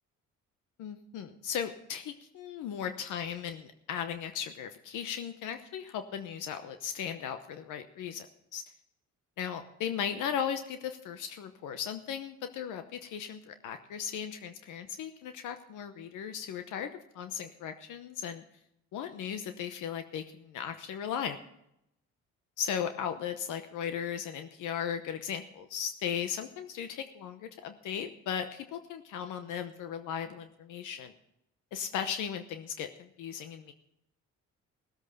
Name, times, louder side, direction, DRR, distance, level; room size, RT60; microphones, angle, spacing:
voice 1, 0.8-8.3 8.5-8.6 9.4-18.4 18.9-21.4 22.6-31.1 31.7-33.7, left 8 dB, 90° left, 8 dB, 1.0 m, -37 dB
17.5 x 8.2 x 5.6 m, 0.79 s
cardioid pair, 90°, 30 cm